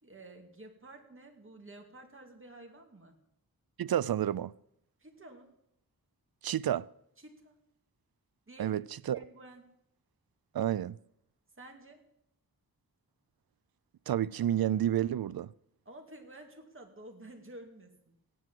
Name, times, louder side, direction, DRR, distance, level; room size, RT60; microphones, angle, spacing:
voice 1, 0.0-3.1 5.0-5.5 7.2-7.6 8.5-8.8 9.1-9.6 11.6-12.0 15.9-18.1, right 2 dB, 35° right, 2.6 m, -51 dB
voice 2, 3.8-4.5 6.4-6.9 8.6-9.2 10.5-11.0 14.1-15.5, right 11 dB, 80° right, 0.5 m, -30 dB
15.5 x 10.0 x 7.6 m
wide cardioid pair, 105°, 36 cm